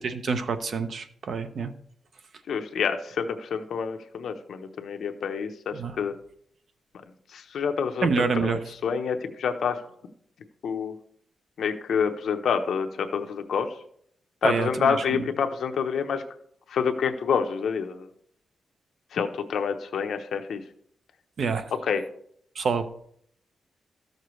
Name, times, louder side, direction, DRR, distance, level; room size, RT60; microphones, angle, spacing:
voice 1, 0.0-1.7 5.7-5.9 8.0-8.6 14.4-15.2 21.4-21.7 22.6-22.9, right 5 dB, 50° right, 10 dB, 0.6 m, -27 dB
voice 2, 2.5-6.1 7.3-9.8 10.6-10.9 11.6-13.7 14.4-16.2 16.7-18.1 19.1-20.6 21.8-22.0, left 6 dB, 65° left, 6 dB, 0.8 m, -27 dB
13.5 x 6.6 x 3.1 m, 0.65 s
wide cardioid pair, 180°, 0 cm